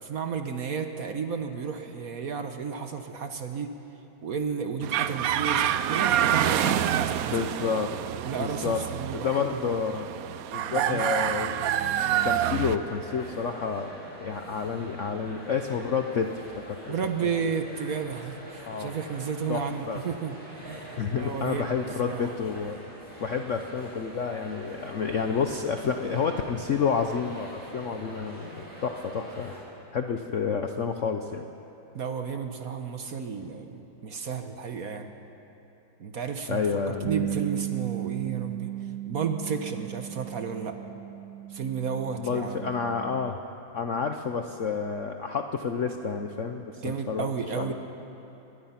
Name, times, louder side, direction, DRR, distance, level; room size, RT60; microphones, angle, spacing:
voice 1, 0.0-3.7 4.2-7.2 8.2-9.8 10.7-11.0 16.9-21.8 22.1-22.3 31.9-35.1 36.0-38.7 39.1-40.8 41.5-42.7 46.8-47.7, right 6 dB, 50° right, 6 dB, 1.3 m, -32 dB
sound 1, 4.8-12.8, right 10 dB, 85° right, 0.7 m, -27 dB
voice 2, 7.3-7.9 8.4-8.8 9.1-10.1 10.5-11.5 12.2-16.3 16.7-16.8 18.7-18.9 19.5-20.0 21.0-22.8 23.2-29.6 29.9-31.4 36.5-37.4 42.2-43.4 43.7-47.3 47.6-47.7, left 6 dB, 60° left, 5 dB, 0.8 m, -29 dB
sound 2, 11.8-29.6, equal, 5° left, 6.4 m, -44 dB
Bass guitar, 37.1-43.3, right 15 dB, 70° right, 1.2 m, -36 dB
23.5 x 20.5 x 5.8 m, 3.0 s
omnidirectional pair, 2.2 m